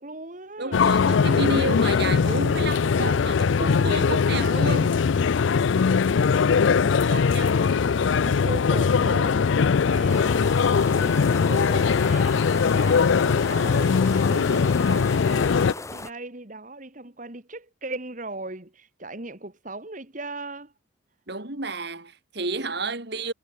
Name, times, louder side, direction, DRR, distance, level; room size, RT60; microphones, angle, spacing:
voice 1, 0.0-0.8 6.8-9.5 9.9-10.5 10.8-20.7, right 2 dB, 40° right, 2.0 m, -38 dB
voice 2, 0.6-5.1 7.1-7.6 21.3-23.3, right 2 dB, 55° right, 2.9 m, -31 dB
sound 1, 0.7-15.7, left 5 dB, 70° left, 0.4 m, -21 dB
sound 2, 10.1-16.1, left 2 dB, 15° left, 1.1 m, -37 dB
head